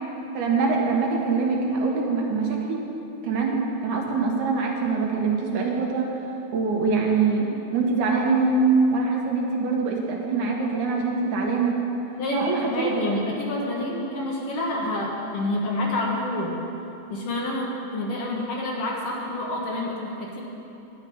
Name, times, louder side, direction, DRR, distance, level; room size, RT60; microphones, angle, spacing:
voice 1, 0.3-2.8 3.2-6.1 6.5-8.6 8.9-11.8 12.3-12.9 13.9-14.0, right 4 dB, 80° right, -1 dB, 2.9 m, -24 dB
voice 2, 12.2-16.5 17.1-20.4, left 1 dB, 60° left, -2 dB, 2.0 m, -28 dB
11.0 x 9.9 x 5.6 m, 2.9 s
omnidirectional pair, 3.4 m